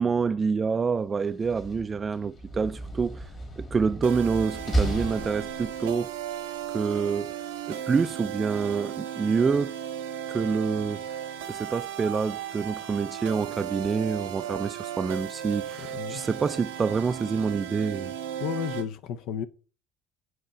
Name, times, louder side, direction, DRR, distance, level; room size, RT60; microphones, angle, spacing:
voice 1, 0.0-3.3 3.6-6.1 6.7-7.3 7.7-9.7 10.3-11.0 11.5-18.1, right 5 dB, 30° right, 0.3 m, -27 dB
Slam, 1.3-6.0, right 1 dB, 40° left, 1.8 m, -33 dB
sound 1, 4.0-18.9, right 10 dB, 90° right, 0.6 m, -36 dB
voice 2, 15.8-16.2 18.4-19.4, left 8 dB, 70° left, 0.4 m, -32 dB
7.6 x 3.0 x 4.4 m
hypercardioid pair, 75°, 0 cm